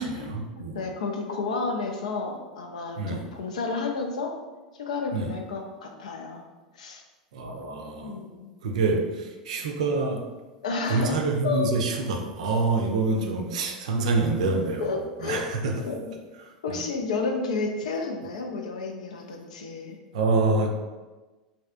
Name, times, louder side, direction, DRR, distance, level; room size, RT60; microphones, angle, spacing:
voice 1, 0.0-0.8 3.0-3.2 5.1-5.3 7.3-8.2 8.6-10.2 10.9-15.9 16.4-16.8 20.1-20.7, right 3 dB, 60° right, 3 dB, 0.4 m, -26 dB
voice 2, 0.7-4.4 4.8-6.4 6.7-7.0 8.0-8.5 10.6-11.2 11.4-11.7 14.8-15.6 15.9-16.0 16.6-20.0, left 4 dB, 65° left, 3 dB, 0.4 m, -31 dB
3.2 x 2.7 x 2.4 m, 1.2 s
figure-of-eight pair, 85°, 4 cm